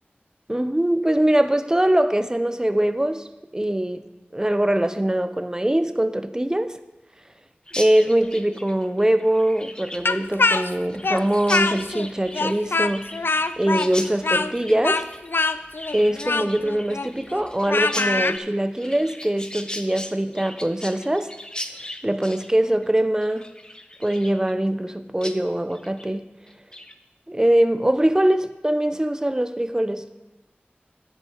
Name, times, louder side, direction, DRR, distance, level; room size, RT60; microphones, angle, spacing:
voice 1, 0.5-3.3 3.5-4.0 4.3-6.8 7.8-13.1 13.6-15.1 15.9-21.3 22.0-23.5 24.0-26.3 27.3-30.0, right 1 dB, 15° right, 0.6 m, -22 dB
Chirp tweet, 7.7-24.9 25.2-25.4 25.7-26.1 26.5-26.9, left 1 dB, 20° left, 0.7 m, -38 dB
Speech, 10.0-12.1 12.3-18.4, left 3 dB, 65° left, 0.4 m, -23 dB
10.0 x 9.3 x 4.4 m
wide cardioid pair, 55°, 4 cm